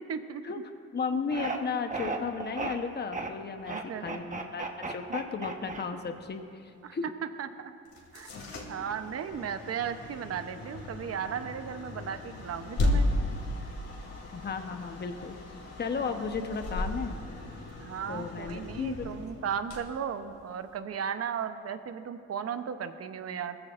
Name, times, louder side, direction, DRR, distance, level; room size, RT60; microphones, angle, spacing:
voice 1, 0.1-0.4 3.7-4.2 6.8-7.0 7.4-7.7 8.1-8.3 8.7-13.1 16.1-16.2 17.8-23.6, right 7 dB, 55° right, 9 dB, 0.9 m, -36 dB
voice 2, 0.9-7.0 14.3-15.4 15.8-17.2 18.1-19.1, left 5 dB, 35° left, 6 dB, 1.0 m, -34 dB
sound 1, 1.3-1.6 1.9-2.7 3.1-3.3 3.6-6.2, right 3 dB, 25° right, 1.2 m, -35 dB
sound 2, 7.9-20.8, left 1 dB, 55° left, 3.1 m, -35 dB
20.0 x 15.0 x 2.6 m, 2.5 s
cardioid pair, 90°, 30 cm